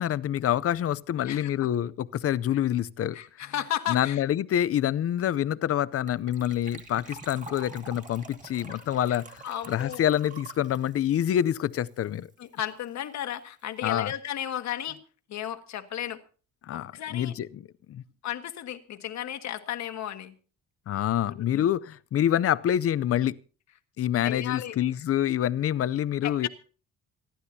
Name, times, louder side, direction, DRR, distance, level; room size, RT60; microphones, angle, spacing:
voice 1, 0.0-3.2 3.9-12.3 13.8-14.1 16.6-17.6 17.9-18.0 20.9-23.4 24.0-26.5, left 11 dB, 50° left, 0.6 m, -27 dB
voice 2, 3.1-4.2 9.1-9.2 9.4-10.1 12.4-15.0 15.3-16.2 16.7-17.3 18.2-20.3 21.3-21.7 24.2-24.8 26.2-26.5, left 11 dB, 70° left, 1.5 m, -34 dB
Gurgling / Trickle dribble / Fill (with liquid), 6.1-12.3 12.6-12.7 12.8-13.1 13.4-13.5, right 3 dB, 25° right, 2.3 m, -46 dB
27.0 x 12.0 x 2.8 m
cardioid pair, 140°, 29 cm